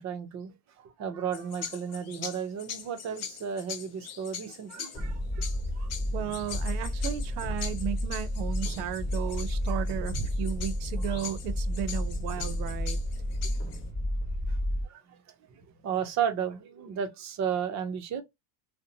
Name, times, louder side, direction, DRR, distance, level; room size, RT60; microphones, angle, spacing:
voice 1, 0.0-5.9 9.7-9.8 13.2-13.6 14.5-14.6 14.8-15.2 15.5-18.2, right 8 dB, 35° right, 0.5 m, -34 dB
sound 1, 1.3-13.9, left 7 dB, 35° left, 0.5 m, -43 dB
sound 2, 4.9-14.8, left 1 dB, 15° left, 1.1 m, -31 dB
voice 2, 6.1-13.0, right 10 dB, 75° right, 0.6 m, -34 dB
2.5 x 2.1 x 2.6 m
supercardioid pair, 130°, 49 cm